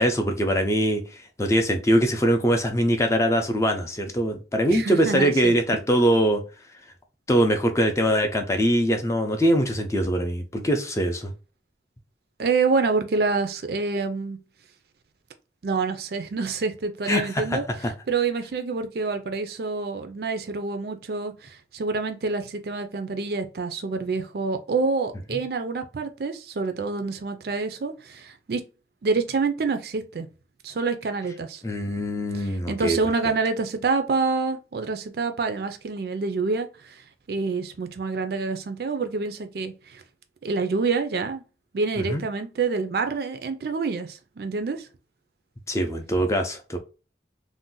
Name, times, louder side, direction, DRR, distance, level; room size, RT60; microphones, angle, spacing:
voice 1, 0.0-6.4 7.3-11.3 17.1-17.9 25.3-25.4 31.6-33.0 42.0-42.2 45.7-46.8, equal, 15° left, 0.4 m, -23 dB
voice 2, 4.7-5.8 12.4-14.4 15.6-17.6 18.1-28.7 29.0-30.3 30.6-31.6 32.3-37.0 37.3-40.0 40.4-41.4 41.7-44.9, right 4 dB, 60° right, 0.4 m, -27 dB
2.5 x 2.1 x 3.7 m
head